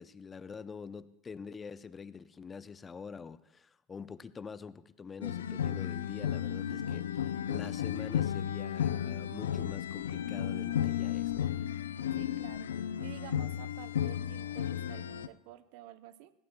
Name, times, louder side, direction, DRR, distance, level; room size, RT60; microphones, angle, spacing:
voice 1, 0.0-11.5, left 5 dB, 25° left, 0.6 m, -45 dB
sound 1, 5.2-15.3, left 10 dB, 85° left, 0.4 m, -34 dB
voice 2, 12.1-16.3, right 13 dB, 65° right, 0.7 m, -50 dB
21.0 x 15.5 x 2.3 m
hypercardioid pair, 85°, 0 cm